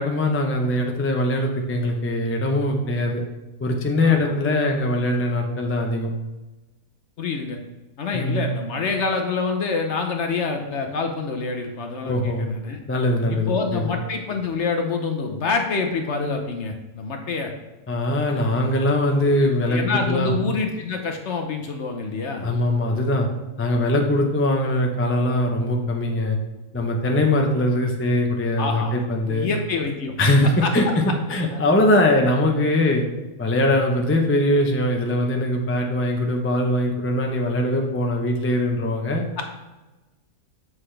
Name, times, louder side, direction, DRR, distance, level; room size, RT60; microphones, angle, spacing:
voice 1, 0.0-3.2 3.6-6.1 8.1-8.5 12.1-12.5 12.9-13.9 17.9-20.3 22.4-23.3 23.6-26.4 26.7-29.5 30.2-31.0 31.3-33.0 33.4-39.2, left 1 dB, 20° left, 2 dB, 0.4 m, -21 dB
voice 2, 7.2-7.6 8.0-12.8 13.3-17.5 19.7-22.5 27.0-27.2 28.6-29.0 29.3-30.2 30.6-30.7 31.5-31.6 39.4-39.5, left 4 dB, 55° left, 4 dB, 0.9 m, -26 dB
7.7 x 6.1 x 3.3 m, 1.1 s
omnidirectional pair, 1.7 m